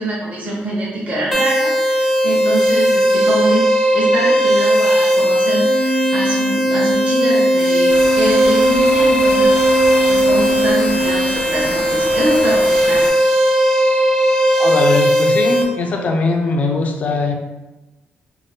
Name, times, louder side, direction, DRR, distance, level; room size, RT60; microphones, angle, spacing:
voice 1, 0.0-13.4, right 1 dB, 35° right, -5 dB, 0.7 m, -24 dB
sound 1, 1.3-15.6, equal, 5° right, 0.5 m, -16 dB
Organ, 5.6-12.1, right 1 dB, 80° left, 0.8 m, -22 dB
sound 2, 7.9-13.1, right 1 dB, 80° right, 0.7 m, -30 dB
voice 2, 14.6-17.4, left 3 dB, 40° left, 3 dB, 0.3 m, -20 dB
2.6 x 2.1 x 3.3 m, 1.1 s
cardioid pair, 145°, 4 cm